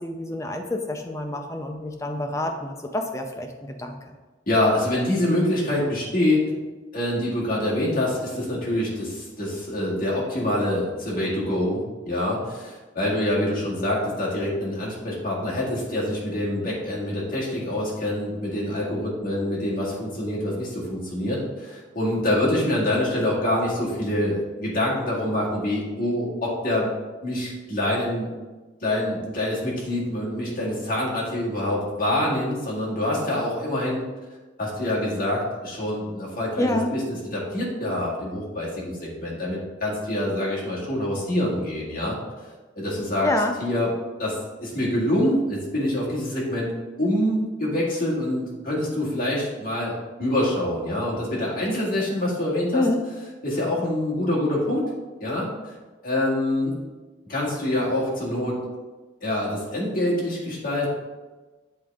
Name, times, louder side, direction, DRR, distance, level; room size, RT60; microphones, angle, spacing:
voice 1, 0.0-4.0 36.6-36.9 43.2-43.6 52.7-53.0, left 1 dB, 15° left, 4 dB, 0.5 m, -27 dB
voice 2, 4.5-6.4 6.9-26.9 27.2-28.3 28.8-34.0 34.6-37.0 37.3-42.2 42.8-43.3 43.6-43.9 44.2-46.7 47.0-52.9 53.4-54.9 55.2-55.7 56.0-56.8 57.3-58.6 59.2-60.9, left 1 dB, 45° left, -6 dB, 1.9 m, -25 dB
7.8 x 3.7 x 3.6 m, 1.2 s
head